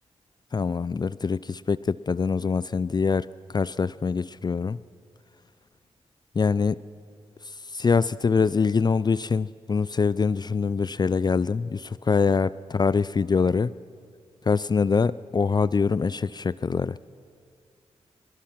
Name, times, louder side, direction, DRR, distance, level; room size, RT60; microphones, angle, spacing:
voice 1, 0.5-3.3 3.5-4.8 6.4-6.8 7.7-13.7 14.5-17.0, left 5 dB, 35° left, 19 dB, 0.4 m, -24 dB
23.0 x 20.0 x 5.9 m, 2.3 s
supercardioid pair, 45°, 12 cm